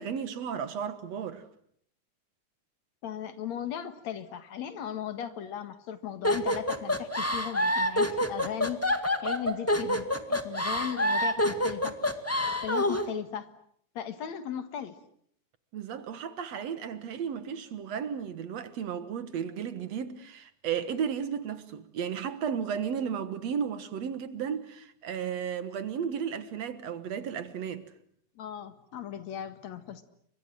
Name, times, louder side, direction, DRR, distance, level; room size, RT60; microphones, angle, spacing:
voice 1, 0.0-1.4 15.7-27.9, right 7 dB, 65° right, 2.5 m, -34 dB
voice 2, 3.0-8.8 9.2-12.0 12.6-13.5 13.9-15.0 28.4-30.0, left 9 dB, 65° left, 2.9 m, -37 dB
sound 1, 6.2-13.1, left 1 dB, 5° left, 1.2 m, -27 dB
29.5 x 24.5 x 7.7 m
omnidirectional pair, 3.4 m